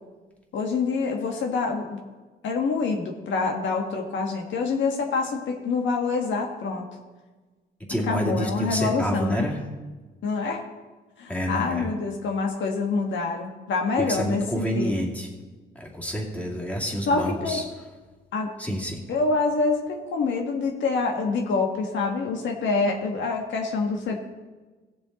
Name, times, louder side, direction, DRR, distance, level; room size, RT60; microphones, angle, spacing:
voice 1, 0.5-2.0 2.4-6.9 8.1-9.4 10.2-10.6 11.2-15.1 17.1-17.6 18.3-18.5 19.1-24.2, left 4 dB, 70° left, 2 dB, 1.3 m, -26 dB
voice 2, 7.9-9.6 11.3-11.9 14.0-15.3 15.7-17.6 18.6-19.0, equal, 5° left, -2 dB, 2.4 m, -28 dB
16.5 x 7.1 x 4.0 m, 1.3 s
cardioid pair, 90°, 20 cm